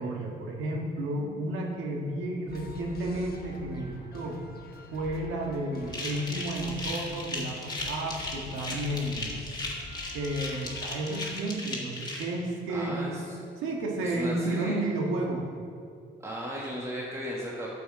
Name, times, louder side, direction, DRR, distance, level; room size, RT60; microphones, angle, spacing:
voice 1, 0.0-4.4 4.9-9.3 10.1-13.1 13.6-15.5, right 1 dB, 90° right, -1 dB, 1.5 m, -32 dB
sound 1, 2.5-11.3, left 3 dB, 50° left, 1.3 m, -45 dB
sound 2, 5.9-12.2, left 2 dB, 20° left, 1.8 m, -36 dB
voice 2, 12.7-13.4 14.0-14.8 16.2-17.7, equal, 15° right, -5 dB, 1.5 m, -35 dB
8.8 x 6.9 x 4.7 m, 2.3 s
cardioid pair, 90°, 20 cm